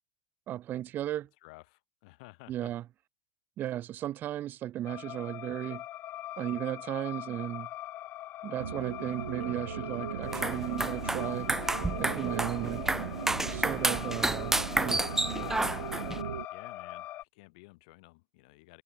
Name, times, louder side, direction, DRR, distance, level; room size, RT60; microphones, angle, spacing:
voice 1, 0.5-1.3 2.5-2.8 3.6-5.8 6.4-7.7 8.4-11.5 12.0-12.8 13.5-15.0, right 12 dB, 45° right, 2.5 m, -35 dB
voice 2, 1.4-2.7 16.5-18.8, left 25 dB, 65° left, 6.8 m, -53 dB
sound 1, 4.9-17.2, left 15 dB, 50° left, 3.3 m, -42 dB
sound 2, 8.6-16.5, right 9 dB, 85° right, 3.0 m, -38 dB
sound 3, 10.2-16.2, right 2 dB, 10° right, 0.7 m, -31 dB
hypercardioid pair, 85°, 5 cm